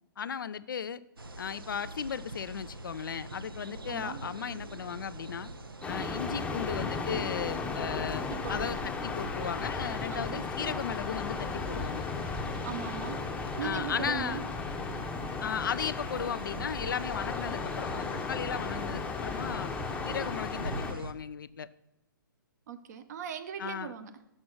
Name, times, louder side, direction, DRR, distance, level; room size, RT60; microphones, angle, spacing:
voice 1, 0.2-1.0 1.4-5.5 5.9-12.1 13.6-14.4 15.4-19.7 20.0-21.7 23.6-23.9, left 7 dB, 65° left, 15 dB, 0.4 m, -36 dB
sound 1, 1.2-21.1, right 2 dB, 90° right, 0.7 m, -45 dB
voice 2, 3.9-4.2 8.2-8.8 10.1-10.4 12.6-13.3 13.6-14.4 22.7-24.1, right 8 dB, 50° right, 9 dB, 0.8 m, -39 dB
sound 2, 5.8-20.9, left 4 dB, 10° left, 0.7 m, -35 dB
6.4 x 5.9 x 6.3 m, 0.86 s
figure-of-eight pair, 125°, 12 cm